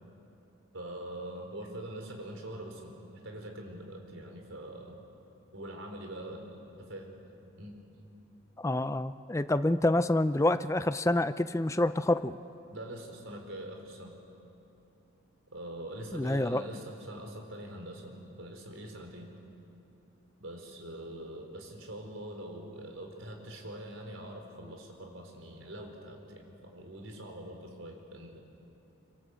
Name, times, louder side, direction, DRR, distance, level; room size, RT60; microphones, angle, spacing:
voice 1, 0.7-5.0 5.5-6.6 6.9-7.2 7.6-7.7 12.7-14.2 15.5-19.3 20.4-28.4, right 1 dB, 85° right, 3 dB, 4.5 m, -43 dB
voice 2, 8.6-12.4 16.1-16.6, left 1 dB, 15° left, 12 dB, 0.5 m, -27 dB
26.0 x 25.0 x 8.2 m, 2.9 s
head